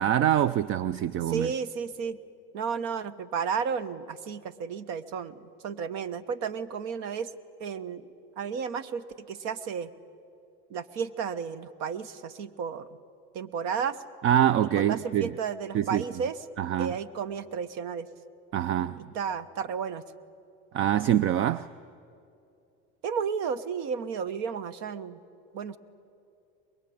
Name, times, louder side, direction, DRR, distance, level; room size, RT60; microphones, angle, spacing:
voice 1, 0.0-1.5 14.2-15.3 15.7-16.0 16.6-17.0 18.5-19.1 20.7-21.7, right 11 dB, 45° right, 0.5 m, -25 dB
voice 2, 1.3-2.2 2.5-7.3 7.6-8.1 8.4-9.9 10.7-12.9 13.3-14.0 14.7-16.3 16.8-18.1 19.1-20.0 23.0-25.2 25.5-25.8, right 6 dB, 65° right, 1.2 m, -32 dB
23.0 x 22.0 x 8.7 m
supercardioid pair, 110°, 29 cm